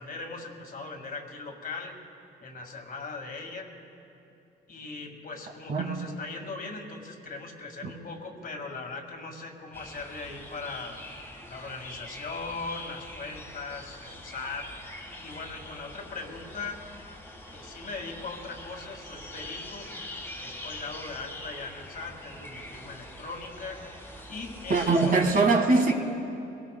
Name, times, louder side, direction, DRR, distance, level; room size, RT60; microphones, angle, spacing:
voice 1, 0.0-2.0 2.4-3.7 4.7-11.0 11.5-14.7 15.2-16.9 17.5-19.9 20.4-23.9 24.3-25.3, left 3 dB, 45° left, 3 dB, 2.0 m, -39 dB
sound 1, 9.7-25.4, left 1 dB, 10° left, 1.6 m, -43 dB
voice 2, 24.7-25.9, right 3 dB, 45° right, 3 dB, 1.7 m, -22 dB
22.5 x 18.5 x 2.2 m, 2.8 s
cardioid pair, 90°, 20 cm